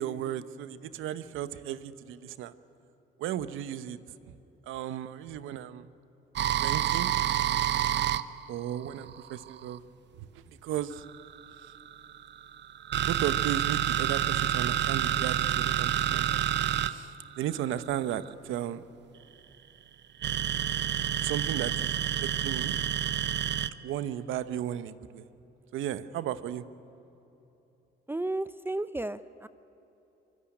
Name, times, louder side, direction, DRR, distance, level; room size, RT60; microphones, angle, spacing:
voice 1, 0.0-2.5 3.2-4.0 4.7-5.9 6.6-7.1 8.5-9.8 10.2-11.0 13.1-16.4 16.8-18.9 21.2-22.1 22.4-22.7 23.8-25.3 25.7-26.6, right 11 dB, 90° right, 14 dB, 1.0 m, -35 dB
sound 1, 6.4-9.8 10.9-18.3 20.2-23.7, right 10 dB, 60° right, 0.9 m, -28 dB
voice 2, 28.1-29.5, right 2 dB, 10° right, 14 dB, 0.6 m, -33 dB
25.0 x 21.0 x 9.9 m, 3.0 s
cardioid pair, 90°, 20 cm